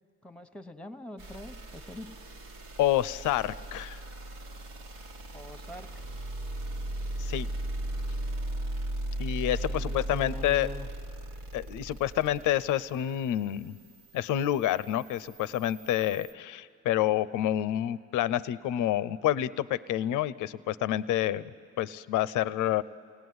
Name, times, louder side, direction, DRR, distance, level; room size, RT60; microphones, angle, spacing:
voice 1, 0.2-2.1 5.3-6.0 9.4-10.9, left 1 dB, 5° left, 10 dB, 1.0 m, -44 dB
sound 1, 1.2-16.3, right 1 dB, 90° right, 1.8 m, -38 dB
voice 2, 2.8-4.0 7.2-7.5 9.2-10.7 11.5-13.7 14.1-21.5 21.8-22.8, left 12 dB, 90° left, 17 dB, 0.6 m, -28 dB
29.0 x 18.5 x 9.5 m, 2.5 s
cardioid pair, 90°, 30 cm